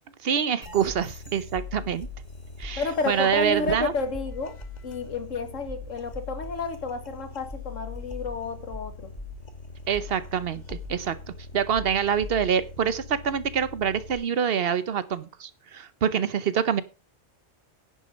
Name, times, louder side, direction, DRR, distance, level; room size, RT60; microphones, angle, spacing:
voice 1, 0.2-2.1 2.6-3.9 9.9-11.1 11.5-16.8, right 7 dB, 55° right, 1.0 m, -26 dB
sound 1, 0.6-14.1, left 3 dB, 35° left, 1.5 m, -41 dB
voice 2, 2.8-4.6 4.8-9.1, left 3 dB, 75° left, 1.8 m, -31 dB
10.5 x 6.6 x 5.2 m
omnidirectional pair, 1.3 m